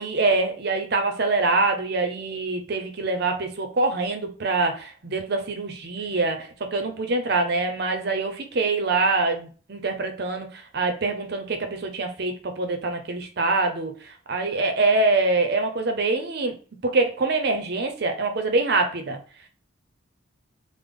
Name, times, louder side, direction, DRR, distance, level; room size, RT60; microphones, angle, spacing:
voice 1, 0.0-10.5 10.7-13.9 14.3-16.6 16.8-19.2, right 3 dB, 55° right, 0.6 m, -24 dB
3.4 x 2.0 x 3.5 m
head